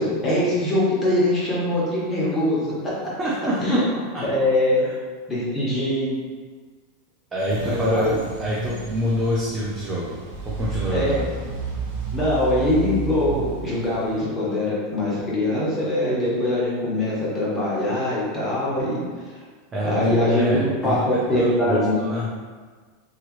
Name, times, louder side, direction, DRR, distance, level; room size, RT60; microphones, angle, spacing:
voice 1, 0.0-2.9 3.6-3.8 4.2-4.9 5.3-6.1 7.6-8.1 10.9-11.3 12.1-19.3 19.8-21.0 21.3-22.0, left 1 dB, 15° left, -8 dB, 1.3 m, -22 dB
voice 2, 3.2-4.5 7.3-10.2 10.4-11.3 19.7-22.3, equal, 20° right, -6 dB, 0.6 m, -26 dB
sound 1, 7.5-14.2, right 2 dB, 70° right, 0.8 m, -32 dB
3.5 x 3.0 x 3.1 m, 1.5 s
supercardioid pair, 145°, 0 cm